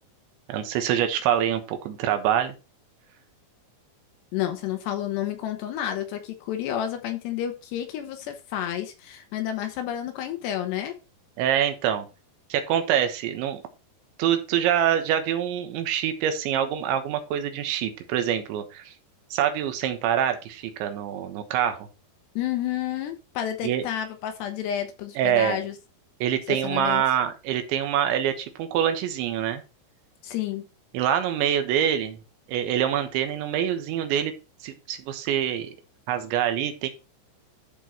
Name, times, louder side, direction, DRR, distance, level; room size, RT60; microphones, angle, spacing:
voice 1, 0.5-2.5 11.4-12.1 12.5-13.6 14.2-18.9 19.3-21.9 23.6-23.9 25.2-25.6 26.2-29.6 30.9-32.2 32.5-34.3 34.6-35.8 36.1-36.9, right 10 dB, 80° right, 8 dB, 3.5 m, -25 dB
voice 2, 4.3-10.9 22.4-25.8 26.5-27.0 30.2-30.7, left 11 dB, 75° left, 6 dB, 2.9 m, -30 dB
12.0 x 4.6 x 4.4 m, 0.30 s
omnidirectional pair, 5.3 m